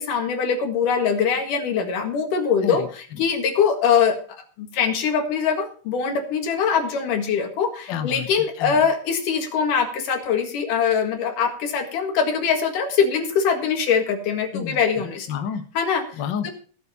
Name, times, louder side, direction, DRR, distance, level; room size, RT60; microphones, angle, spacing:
voice 1, 0.0-2.8 3.2-4.2 4.6-15.3 15.7-16.0 16.4-16.5, left 6 dB, 80° left, 4 dB, 3.3 m, -22 dB
voice 2, 2.6-3.2 7.9-8.9 14.5-15.6 16.1-16.5, left 8 dB, 55° left, 6 dB, 1.3 m, -31 dB
18.0 x 7.3 x 4.2 m, 0.41 s
omnidirectional pair, 3.7 m